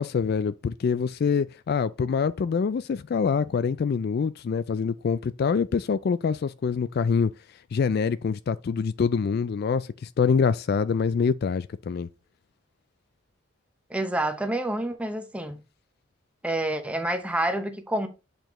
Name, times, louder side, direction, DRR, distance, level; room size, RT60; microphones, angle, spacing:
voice 1, 0.0-7.3 7.7-12.1, left 6 dB, 50° left, 0.3 m, -25 dB
voice 2, 13.9-15.6 16.4-18.1, right 1 dB, 5° right, 0.8 m, -28 dB
7.9 x 4.4 x 3.0 m
head